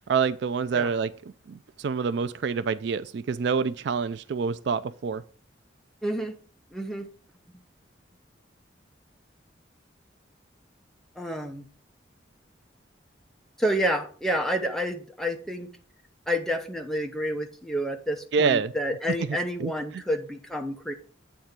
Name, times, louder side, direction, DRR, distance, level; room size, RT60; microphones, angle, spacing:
voice 1, 0.1-1.1 1.5-5.2 18.3-18.7 19.3-19.7, right 5 dB, 60° right, 0.3 m, -27 dB
voice 2, 6.0-6.4 6.7-7.1 11.2-11.7 13.6-15.7 16.3-20.9, equal, ahead, 0.8 m, -29 dB
8.7 x 3.4 x 6.6 m
head